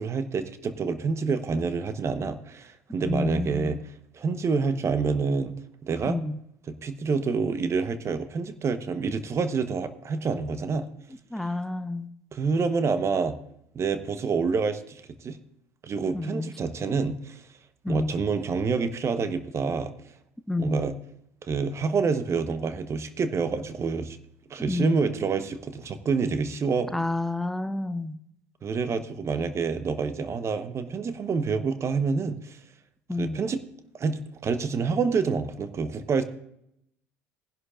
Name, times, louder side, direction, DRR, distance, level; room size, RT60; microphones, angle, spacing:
voice 1, 0.0-3.8 4.1-5.5 5.8-6.2 6.7-10.9 12.3-13.4 13.7-15.4 15.8-17.4 17.9-19.9 20.6-21.0 21.5-24.2 24.5-26.9 28.6-32.6 33.2-33.6 34.0-36.2, right 5 dB, 35° right, 10 dB, 1.1 m, -27 dB
voice 2, 3.0-3.8 6.1-6.4 11.3-12.1 16.1-16.5 17.8-18.1 20.5-20.8 24.7-25.1 26.9-28.2 33.1-33.5, left 2 dB, 5° left, 11 dB, 0.8 m, -29 dB
19.5 x 11.0 x 2.5 m, 0.75 s
hypercardioid pair, 65°, 8 cm